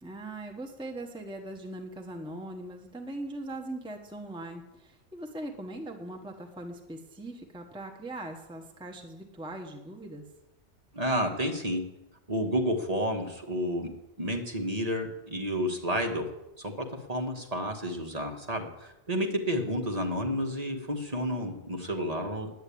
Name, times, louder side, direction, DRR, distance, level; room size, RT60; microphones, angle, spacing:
voice 1, 0.0-10.2, right 1 dB, 5° right, 3 dB, 1.1 m, -40 dB
voice 2, 10.9-11.8 12.3-13.9 14.2-16.3 16.6-22.5, equal, 35° right, 2 dB, 1.5 m, -30 dB
10.0 x 9.0 x 8.5 m, 0.95 s
omnidirectional pair, 1.2 m